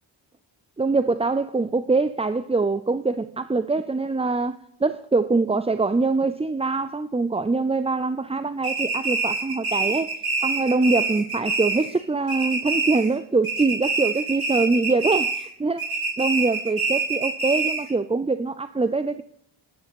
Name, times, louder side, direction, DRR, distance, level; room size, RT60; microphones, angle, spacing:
voice 1, 0.8-10.1 10.4-19.2, right 3 dB, 15° right, 0.4 m, -24 dB
sound 1, 8.6-12.0 12.3-13.2 13.4-15.5 15.8-17.9, right 4 dB, 85° right, 5.1 m, -26 dB
10.5 x 10.5 x 5.2 m
wide cardioid pair, 65°, 49 cm